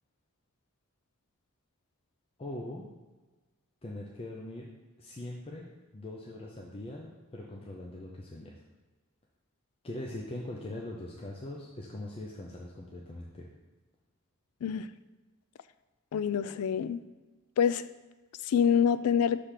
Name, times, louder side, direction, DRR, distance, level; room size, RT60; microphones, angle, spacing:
voice 1, 2.4-2.8 3.8-4.7 5.0-8.5 9.8-13.5, left 1 dB, 25° left, -2 dB, 0.6 m, -41 dB
voice 2, 16.1-17.0 17.6-17.9 18.4-19.4, left 8 dB, 80° left, 14 dB, 0.3 m, -26 dB
6.5 x 3.4 x 5.7 m, 1.3 s
head